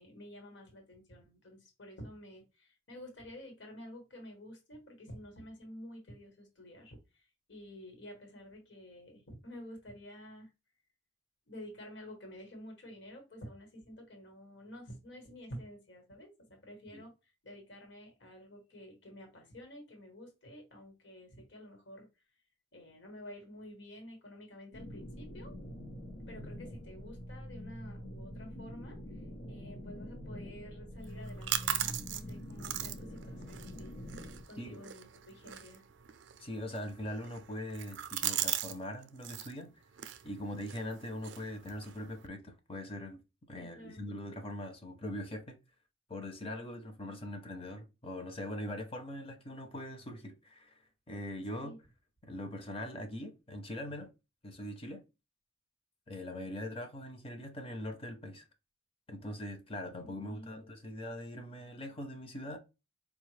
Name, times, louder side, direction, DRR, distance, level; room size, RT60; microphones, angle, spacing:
voice 1, 0.0-7.2 7.5-10.5 11.5-17.1 17.4-22.1 22.7-25.5 26.3-29.0 29.5-33.9 34.5-35.8 43.5-44.0 51.5-51.8 60.0-60.6, equal, 60° left, 1.3 m, -50 dB
sound 1, 24.7-34.4, equal, 80° left, 1.0 m, -45 dB
sound 2, 31.0-38.8 39.0-39.5 39.9-42.3, right 11 dB, 60° right, 0.4 m, -39 dB
voice 2, 36.4-39.7 40.2-43.2 43.5-45.6 46.1-50.7 51.1-51.7 52.2-54.1 54.4-55.0 56.1-58.5 59.1-62.6, left 1 dB, 30° left, 0.6 m, -42 dB
4.6 x 2.4 x 3.2 m
head